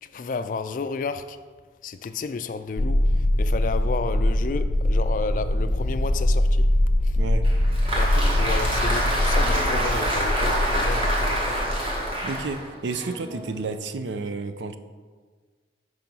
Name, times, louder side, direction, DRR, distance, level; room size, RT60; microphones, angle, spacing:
voice 1, 0.0-1.4 1.8-6.7 7.0-7.2 7.9-11.6, left 4 dB, 45° left, 0.3 m, -32 dB
sound 1, 2.8-12.4, left 1 dB, 85° left, 0.6 m, -23 dB
Applause, 7.4-13.8, right 1 dB, 30° right, 1.1 m, -27 dB
voice 2, 12.2-14.8, right 3 dB, 80° right, 0.5 m, -31 dB
5.3 x 4.9 x 6.0 m
head